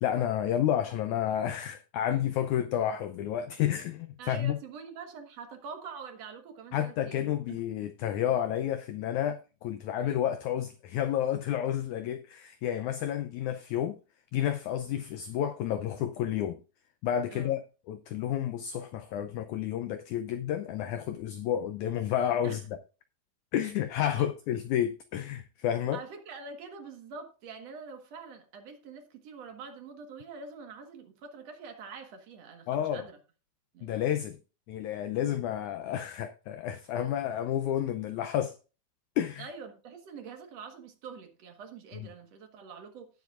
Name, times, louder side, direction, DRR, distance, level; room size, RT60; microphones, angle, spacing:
voice 1, 0.0-4.6 6.7-14.0 14.3-16.6 17.0-17.6 17.9-22.8 23.5-26.0 32.7-33.0 33.8-34.4 34.7-38.5 39.2-39.5 41.9-42.1, left 10 dB, 90° left, 1.7 m, -30 dB
voice 2, 4.2-7.6 17.3-17.5 22.4-22.6 23.6-23.7 24.2-24.3 25.9-33.2 33.7-34.0 39.4-43.1, right 5 dB, 55° right, 2.2 m, -45 dB
17.5 x 7.2 x 2.5 m
omnidirectional pair, 4.2 m